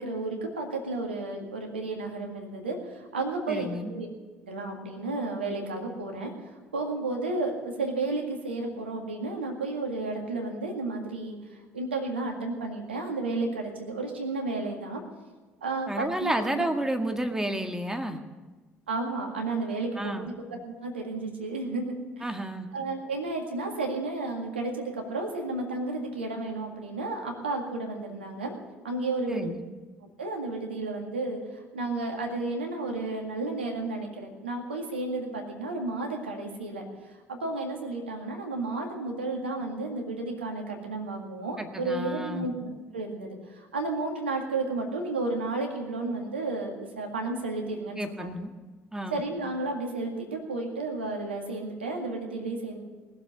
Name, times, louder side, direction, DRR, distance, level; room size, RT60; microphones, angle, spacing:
voice 1, 0.0-4.1 4.5-15.0 15.6-16.7 18.9-22.3 22.7-28.6 28.8-29.5 30.0-48.3 49.1-52.8, right 2 dB, 90° right, 2 dB, 2.0 m, -32 dB
voice 2, 3.5-3.9 15.9-18.2 20.0-20.3 22.2-22.7 29.3-29.6 41.6-42.5 48.0-48.5 48.9-49.2, right 1 dB, 10° right, 5 dB, 1.8 m, -31 dB
19.5 x 7.4 x 9.8 m, 1.3 s
hypercardioid pair, 55°, 6 cm